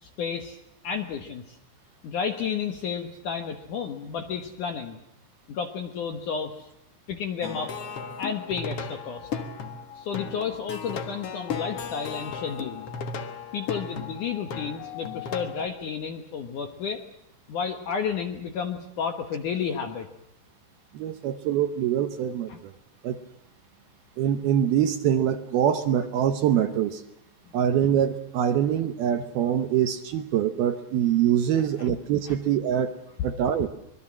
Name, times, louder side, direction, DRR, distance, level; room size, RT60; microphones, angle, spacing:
voice 1, 0.0-0.6 0.8-1.6 2.0-5.0 5.5-6.7 7.1-7.7 8.2-9.3 10.0-12.9 13.5-17.0 17.5-20.1 22.5-22.6 31.6-32.0 32.3-32.4, left 6 dB, 65° left, 7 dB, 2.1 m, -32 dB
Plucked string instrument, 7.4-15.7, left 6 dB, 85° left, 1.3 m, -36 dB
voice 2, 20.9-22.7 23.0-23.2 24.2-27.0 27.5-32.9 33.2-33.7, right 10 dB, 70° right, 9 dB, 2.5 m, -24 dB
25.5 x 21.5 x 7.4 m, 0.80 s
omnidirectional pair, 5.3 m